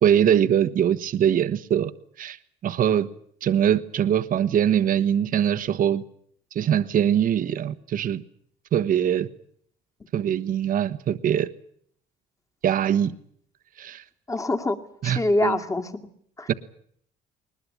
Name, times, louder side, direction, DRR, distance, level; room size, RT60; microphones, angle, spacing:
voice 1, 0.0-1.9 2.2-2.4 2.6-3.1 3.4-6.0 6.5-8.2 8.7-9.3 10.1-11.5 12.6-13.1 13.8-14.0 15.0-15.6 16.5-16.6, right 9 dB, 55° right, 10 dB, 1.3 m, -22 dB
voice 2, 14.3-14.8 15.0-15.9 16.4-16.5, left 2 dB, 20° left, 7 dB, 2.7 m, -24 dB
21.0 x 20.5 x 8.7 m, 0.65 s
cardioid pair, 110°, 17 cm